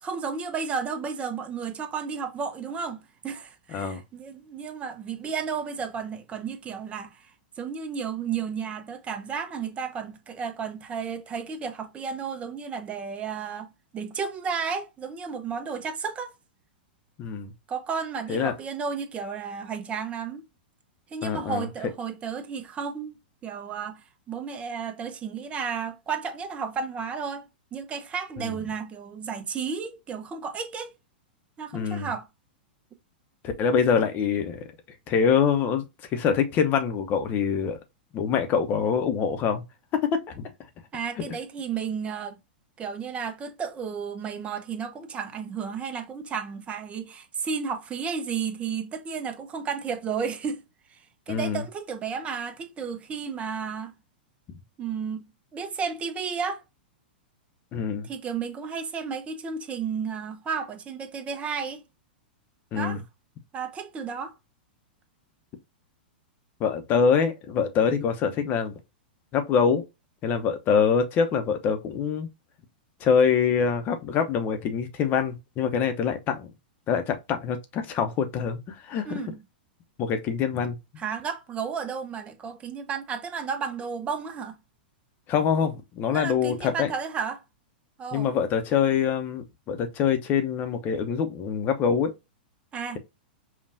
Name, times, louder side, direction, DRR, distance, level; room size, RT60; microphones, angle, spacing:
voice 1, 0.0-7.3 7.6-16.3 17.7-20.4 21.1-30.9 31.6-32.3 40.9-42.4 42.8-50.6 50.9-51.0 51.3-53.9 54.8-56.6 58.1-61.8 62.7-63.0 63.5-64.3 79.0-79.4 81.0-84.6 86.1-87.4 88.0-88.3 92.7-93.0, right 6 dB, 25° right, 0.8 m, -33 dB
voice 2, 3.7-4.0 17.2-17.5 18.3-18.5 21.2-21.6 28.4-28.6 31.7-32.1 33.4-34.6 35.1-35.8 36.1-37.8 38.1-39.6 39.9-40.5 51.3-51.6 57.7-58.1 62.7-63.0 66.6-68.8 69.3-69.8 70.2-72.3 73.0-76.5 76.9-79.2 80.0-80.8 85.3-86.9 88.1-92.1, left 6 dB, 35° left, 0.8 m, -25 dB
5.4 x 2.4 x 2.6 m
hypercardioid pair, 110°, 5 cm